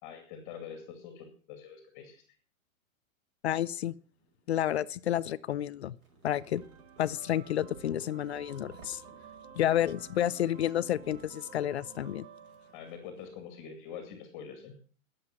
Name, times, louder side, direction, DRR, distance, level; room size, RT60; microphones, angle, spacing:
voice 1, 0.0-2.2 12.7-14.7, left 7 dB, 25° left, 6 dB, 2.5 m, -45 dB
voice 2, 3.4-3.9 4.5-6.0 6.2-6.6 7.0-9.0 9.6-12.3, left 11 dB, 50° left, 18 dB, 0.6 m, -30 dB
sound 1, 4.1-5.1 5.8-13.6, right 3 dB, 80° right, 5.7 m, -59 dB
sound 2, 6.4-13.4, right 7 dB, 20° right, 1.0 m, -52 dB
19.5 x 7.9 x 6.0 m, 0.42 s
hypercardioid pair, 170°, 42 cm